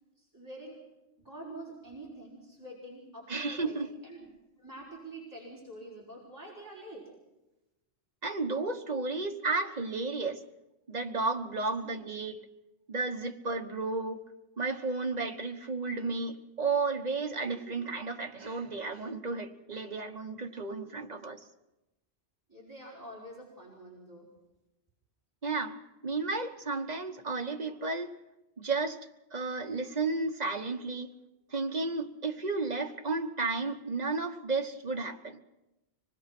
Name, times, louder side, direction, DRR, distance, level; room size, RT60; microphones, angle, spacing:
voice 1, 0.2-0.8 1.2-4.3 4.6-7.1 11.8-12.0 17.4-17.9 22.5-24.3, right 1 dB, 15° right, -6 dB, 5.1 m, -46 dB
voice 2, 3.3-3.9 8.2-10.4 10.9-12.4 12.9-14.2 14.6-21.4 25.4-25.8 26.0-28.1 28.6-29.0 29.3-31.1 31.5-35.4, right 3 dB, 40° right, 4 dB, 1.3 m, -33 dB
25.0 x 20.0 x 6.0 m, 0.97 s
omnidirectional pair, 1.1 m